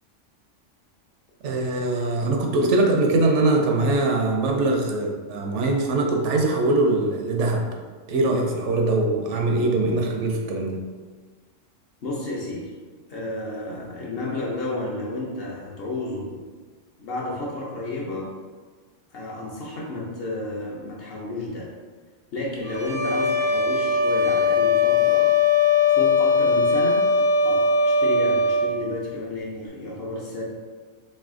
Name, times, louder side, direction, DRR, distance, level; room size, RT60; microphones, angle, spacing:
voice 1, 1.4-7.7 8.1-10.8, right 2 dB, 75° right, 2 dB, 0.9 m, -22 dB
voice 2, 12.0-12.7 13.1-16.4 17.0-18.3 19.1-21.7 22.3-25.3 25.9-27.1 27.4-30.4, left 2 dB, 60° left, -3 dB, 0.8 m, -31 dB
sound 1, 22.7-28.7, left 4 dB, 90° left, 1.1 m, -20 dB
3.2 x 2.7 x 3.6 m, 1.4 s
omnidirectional pair, 1.3 m